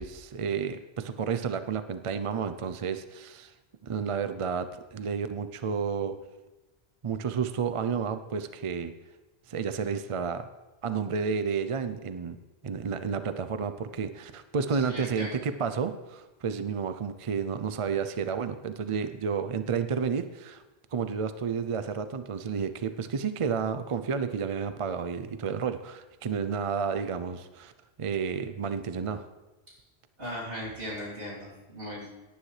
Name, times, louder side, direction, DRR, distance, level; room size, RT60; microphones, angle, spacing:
voice 1, 0.0-3.5 3.8-6.2 7.0-8.9 9.5-10.5 10.8-12.4 12.6-20.6 20.9-27.7 28.0-29.2, right 6 dB, 45° right, 10 dB, 0.5 m, -31 dB
voice 2, 14.9-15.4 30.2-32.1, equal, 65° right, -6 dB, 3.6 m, -37 dB
17.5 x 10.0 x 3.3 m, 1.1 s
omnidirectional pair, 1.1 m